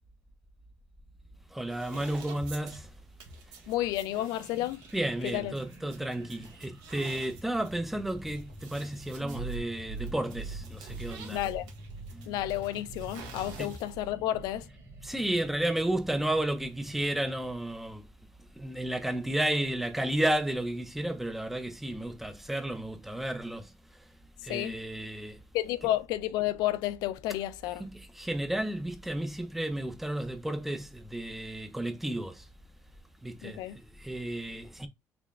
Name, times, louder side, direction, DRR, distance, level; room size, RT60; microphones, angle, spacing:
voice 1, 1.5-2.9 4.9-11.4 13.6-13.8 15.0-18.0 18.5-24.1 24.4-25.4 27.8-32.5 33.2-34.9, right 1 dB, 5° right, 0.4 m, -32 dB
sound 1, 1.7-14.1, right 4 dB, 85° right, 1.2 m, -50 dB
voice 2, 3.7-4.8 5.2-5.5 11.3-11.7 12.3-14.7 24.5-24.7 25.5-27.8 33.4-33.8, left 14 dB, 90° left, 0.4 m, -31 dB
sound 2, 4.1-17.6, equal, 40° right, 1.5 m, -50 dB
sound 3, 9.2-14.6 14.9-15.6, right 4 dB, 60° right, 1.6 m, -43 dB
3.6 x 3.2 x 2.3 m
cardioid pair, 170°, 7 cm